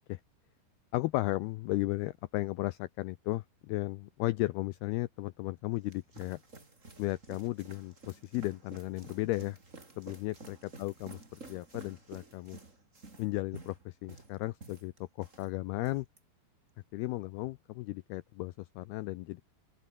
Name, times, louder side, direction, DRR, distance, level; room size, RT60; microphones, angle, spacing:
voice 1, 0.9-6.4 7.0-9.6 10.0-12.6 13.2-16.1 16.9-19.4, left 19 dB, 85° left, 2.2 m, -35 dB
sound 1, 5.6-15.5 15.8-16.2, right 3 dB, 20° right, 3.2 m, -52 dB
open air
omnidirectional pair, 5.3 m